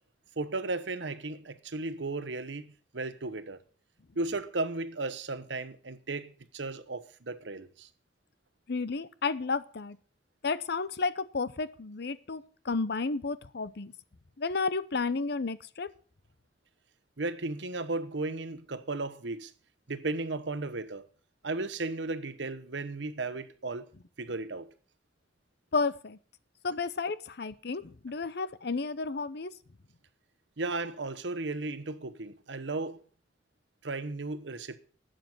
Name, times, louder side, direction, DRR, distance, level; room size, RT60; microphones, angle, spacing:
voice 1, 0.4-2.7 2.9-3.6 4.1-7.9 17.2-19.5 19.9-21.1 21.4-23.9 24.2-24.7 30.6-33.0 33.8-34.8, right 3 dB, 80° right, 1.0 m, -35 dB
voice 2, 8.7-10.0 10.4-13.9 14.4-15.9 25.7-26.2 26.6-29.5, left 4 dB, 65° left, 0.8 m, -32 dB
12.0 x 7.8 x 7.8 m
head